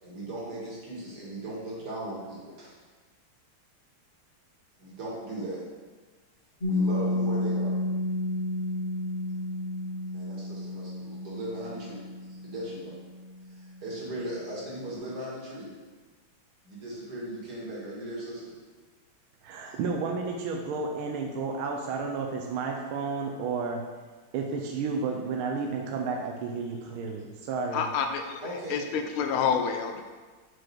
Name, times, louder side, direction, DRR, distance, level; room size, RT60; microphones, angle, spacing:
voice 1, 0.0-2.7 4.8-5.6 6.7-7.8 10.1-12.0 12.4-12.9 13.5-15.7 16.6-18.5 19.6-19.8 28.4-28.9, right 1 dB, 50° right, -6 dB, 2.4 m, -38 dB
Piano, 6.6-13.9, left 2 dB, 30° left, 1.4 m, -31 dB
voice 2, 19.4-23.8 24.3-27.9, right 4 dB, 85° right, 1 dB, 1.4 m, -32 dB
voice 3, 27.7-28.4 28.7-30.0, left 6 dB, 85° left, 5 dB, 1.5 m, -28 dB
6.4 x 4.6 x 4.5 m, 1.4 s
omnidirectional pair, 2.3 m